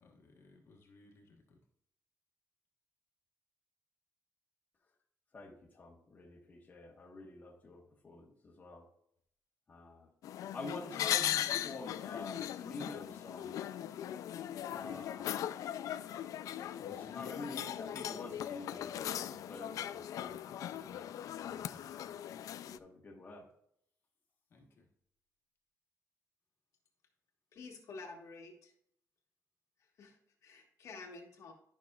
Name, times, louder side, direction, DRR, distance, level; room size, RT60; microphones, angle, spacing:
voice 1, 0.0-1.6 14.7-15.1 16.8-17.2 21.8-22.4 24.5-24.9, left 3 dB, 45° left, 0 dB, 1.3 m, -61 dB
voice 2, 5.3-8.9 9.7-10.1 10.5-13.6 14.7-15.3 16.8-21.9 22.6-23.5, left 2 dB, 30° left, -1 dB, 1.3 m, -48 dB
sound 1, 10.2-22.8, left 11 dB, 80° left, 0.4 m, -39 dB
voice 3, 27.5-28.7 29.8-31.5, left 3 dB, 65° left, 1 dB, 1.5 m, -50 dB
12.0 x 6.0 x 2.4 m, 0.70 s
wide cardioid pair, 160°, 6 cm